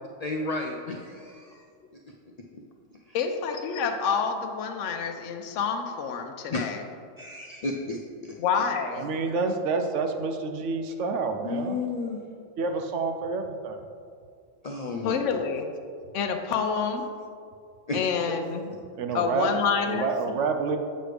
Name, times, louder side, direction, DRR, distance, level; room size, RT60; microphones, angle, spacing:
voice 1, 0.2-1.6 1.9-2.0 2.5-2.6 3.1-3.2 6.5-6.7 7.2-8.3 11.4-12.2 14.6-15.2 17.9-18.0, left 3 dB, 55° left, 1 dB, 0.4 m, -32 dB
voice 2, 3.1-6.8 8.4-9.1 15.0-15.7 16.1-17.0 17.9-18.7 19.1-20.1, left 6 dB, 85° left, 5 dB, 0.9 m, -28 dB
voice 3, 9.0-11.8 12.6-13.8 19.0-19.5 19.8-20.8, right 4 dB, 80° right, 6 dB, 0.9 m, -28 dB
7.8 x 6.3 x 3.3 m, 2.2 s
omnidirectional pair, 1.3 m